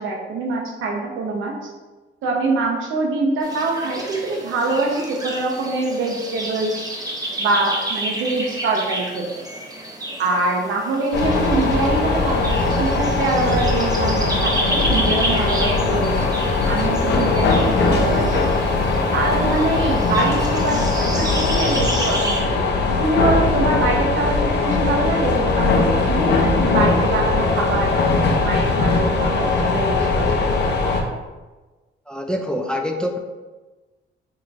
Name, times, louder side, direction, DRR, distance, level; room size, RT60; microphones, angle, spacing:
voice 1, 0.0-1.7 2.2-6.9 7.4-9.4 10.2-16.2 16.7-18.5 19.1-20.8 21.2-22.7 23.0-28.0 28.4-30.6, right 2 dB, 80° right, 0 dB, 0.8 m, -24 dB
sound 1, 3.4-22.4, right 1 dB, 20° right, 0.7 m, -30 dB
sound 2, 11.1-31.0, left 3 dB, 60° left, 0.6 m, -20 dB
voice 2, 32.1-33.2, left 1 dB, 5° left, 3 dB, 0.3 m, -25 dB
4.6 x 2.9 x 2.5 m, 1.2 s
cardioid pair, 90°, 20 cm